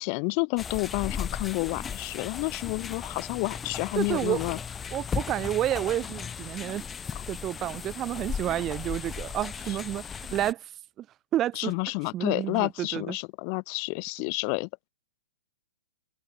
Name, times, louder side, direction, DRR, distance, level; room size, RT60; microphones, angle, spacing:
voice 1, 0.0-4.6 7.1-7.2 11.5-14.7, left 40 dB or more, 40° left, 7.8 m, -30 dB
sound 1, 0.6-10.5, left 7 dB, 15° left, 6.3 m, -36 dB
voice 2, 3.9-4.6 4.9-6.8 7.3-10.7 11.0-11.1 11.3-11.7 12.1-13.2, right 12 dB, 25° right, 1.4 m, -30 dB
open air
hypercardioid pair, 135°, 0 cm